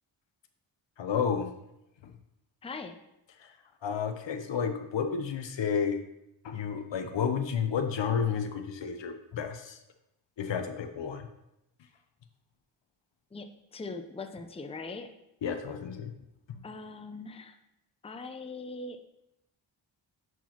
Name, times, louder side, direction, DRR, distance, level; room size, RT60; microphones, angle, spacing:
voice 1, 1.0-1.5 2.0-2.1 3.4-3.5 3.8-6.0 6.4-9.8 10.4-11.3 15.4-16.1 16.5-16.6, left 7 dB, 60° left, 8 dB, 0.8 m, -31 dB
voice 2, 2.6-3.0 13.3-13.5 13.7-15.1 16.6-17.6 18.0-19.0, left 3 dB, 10° left, 6 dB, 0.6 m, -41 dB
10.0 x 4.6 x 2.9 m, 0.85 s
cardioid pair, 50°, 49 cm